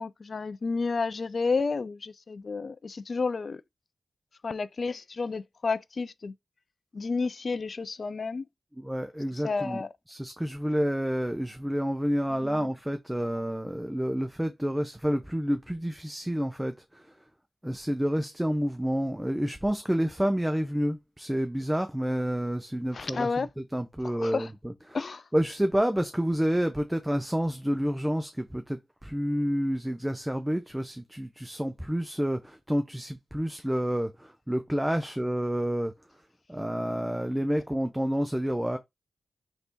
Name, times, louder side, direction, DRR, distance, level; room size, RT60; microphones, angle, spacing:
voice 1, 0.0-3.6 4.4-6.3 6.9-8.5 9.3-9.9 22.9-23.5 24.0-24.5 24.9-25.2, left 4 dB, 60° left, 0.3 m, -31 dB
voice 2, 8.8-9.8 10.1-17.1 17.6-25.0 25.3-35.9 36.5-38.8, equal, 10° right, 0.5 m, -29 dB
3.3 x 2.7 x 4.4 m
cardioid pair, 50°, 0 cm